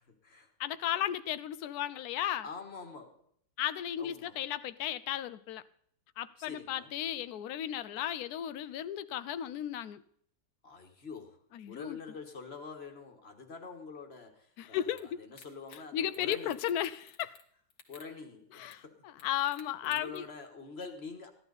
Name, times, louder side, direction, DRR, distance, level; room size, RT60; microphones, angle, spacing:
voice 1, 0.6-2.4 3.6-5.6 6.2-10.0 11.5-12.0 14.6-15.2 15.9-17.4 18.6-20.2, left 11 dB, 70° left, 1.1 m, -35 dB
voice 2, 2.4-3.2 4.0-4.4 6.4-6.9 10.6-16.5 17.2-17.3 17.9-19.1 19.8-21.3, left 4 dB, 40° left, 1.6 m, -46 dB
sound 1, 15.0-15.1 15.4-15.8 16.1-17.4 17.7-18.1 18.7-18.8 19.2-20.2, left 5 dB, 90° left, 2.0 m, -54 dB
15.5 x 11.5 x 4.0 m
omnidirectional pair, 1.8 m